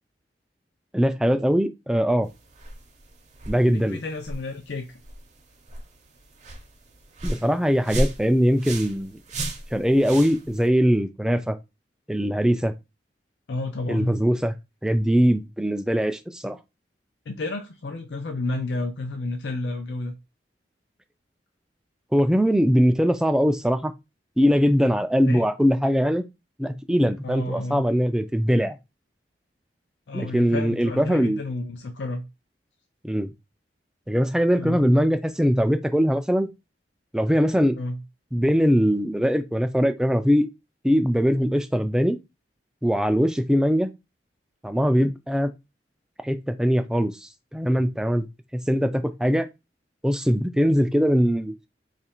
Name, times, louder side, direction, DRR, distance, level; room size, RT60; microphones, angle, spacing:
voice 1, 0.9-2.3 3.5-4.0 7.2-9.2 9.7-11.6 12.1-12.7 13.9-14.5 14.8-16.6 22.1-23.9 24.4-26.3 26.6-28.8 30.1-31.4 33.0-33.3 34.1-36.5 37.1-37.8 38.3-40.5 40.8-42.2 42.8-43.9 44.6-45.5 46.2-48.3 48.5-49.5 50.0-51.5, equal, 5° right, 0.3 m, -21 dB
sound 1, 2.2-10.7, right 1 dB, 40° right, 0.7 m, -34 dB
voice 2, 3.7-5.0 13.5-14.2 17.3-20.1 25.3-25.5 27.2-27.9 30.1-32.2 34.6-34.8 37.8-38.0, left 2 dB, 85° left, 0.5 m, -31 dB
3.1 x 2.5 x 4.3 m
head